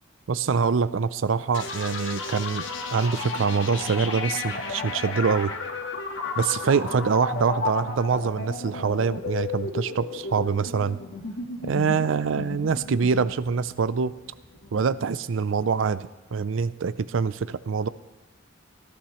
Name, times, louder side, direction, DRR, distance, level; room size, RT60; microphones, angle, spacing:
voice 1, 0.3-2.6 2.9-5.5 6.4-11.0 11.6-14.1 14.7-17.9, right 5 dB, 75° right, 16 dB, 0.5 m, -25 dB
sound 1, 1.5-15.2, left 4 dB, 70° left, 1.5 m, -33 dB
18.5 x 11.5 x 3.1 m, 1.2 s
head